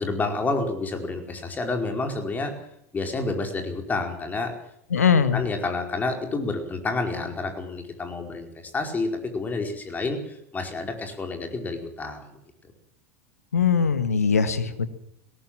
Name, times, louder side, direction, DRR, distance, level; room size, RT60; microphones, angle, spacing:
voice 1, 0.0-2.7 2.9-4.6 5.3-12.4, left 3 dB, 20° left, 4 dB, 4.8 m, -29 dB
voice 2, 4.9-5.4 13.5-14.9, left 6 dB, 80° left, 11 dB, 1.8 m, -21 dB
20.0 x 18.0 x 7.6 m, 0.73 s
figure-of-eight pair, 85°, 8 cm